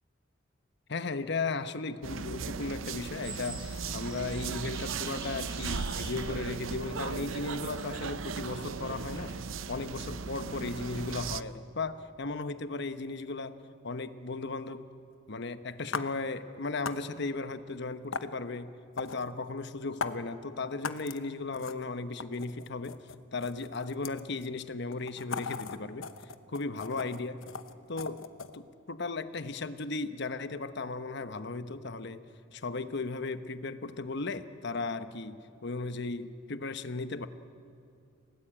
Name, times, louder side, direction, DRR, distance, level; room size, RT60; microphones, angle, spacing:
voice 1, 0.9-9.3 9.7-14.8 15.3-23.0 23.3-26.1 26.5-27.4 27.9-28.2 28.5-32.2 32.5-37.3, left 3 dB, 60° left, 11 dB, 1.0 m, -36 dB
sound 1, 2.0-11.4, right 5 dB, 80° right, 0.7 m, -37 dB
sound 2, 3.2-9.3, right 2 dB, 25° right, 7.2 m, -48 dB
sound 3, 15.9-16.0 16.9-17.0 18.1-18.3 19.0-19.2 20.0-20.1 20.8-21.2 21.5-21.8 22.2-24.5 24.9-28.6, left 5 dB, 90° left, 1.0 m, -38 dB
29.0 x 18.0 x 8.9 m, 2.6 s
head